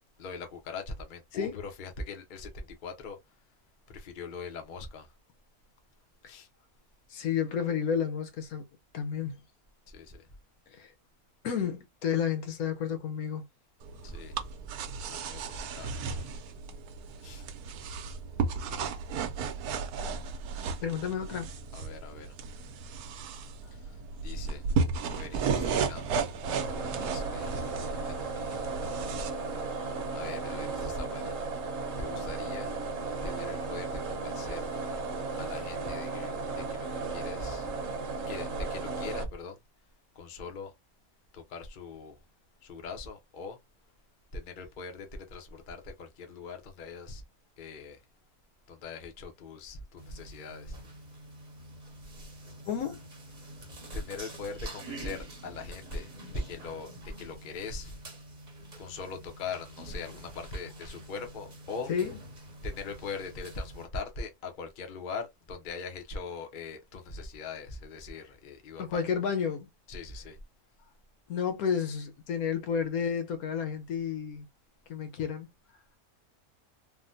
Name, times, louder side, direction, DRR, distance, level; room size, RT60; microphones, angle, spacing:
voice 1, 0.2-3.2 3.9-5.1 6.3-6.5 9.9-10.2 14.0-14.4 15.1-16.3 17.2-17.4 21.7-22.3 23.7-23.9 24.2-24.6 25.1-26.4 26.8-29.3 30.1-31.4 32.0-32.7 33.2-34.6 35.4-37.7 38.3-39.6 40.2-40.7 41.3-42.2 42.6-43.6 44.3-47.2 47.6-48.0 48.7-50.8 53.9-57.9 58.8-61.9 62.6-69.0 69.9-70.4, left 4 dB, 45° left, 0.7 m, -41 dB
voice 2, 7.1-8.7 8.9-9.4 10.7-10.9 11.4-13.5 20.8-21.5 52.7-53.0 61.9-62.2 68.8-69.7 71.3-74.5 74.9-75.5, left 7 dB, 75° left, 1.2 m, -31 dB
sound 1, 13.8-29.3, right 5 dB, 85° right, 1.1 m, -34 dB
sound 2, 26.4-39.2, right 3 dB, 60° right, 1.1 m, -35 dB
sound 3, 50.0-63.8, right 1 dB, 35° right, 0.9 m, -47 dB
3.4 x 2.1 x 2.6 m
omnidirectional pair, 1.6 m